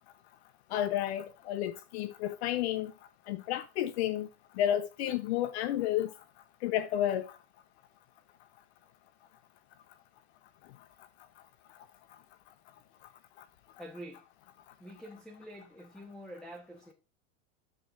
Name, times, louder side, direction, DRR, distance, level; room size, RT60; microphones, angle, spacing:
voice 1, 0.7-2.9 3.3-4.3 4.6-6.1 6.6-7.4, left 12 dB, 65° left, 0.7 m, -31 dB
voice 2, 13.8-14.2 14.8-16.9, equal, ahead, 1.2 m, -47 dB
9.8 x 7.8 x 2.6 m
supercardioid pair, 125°, 35 cm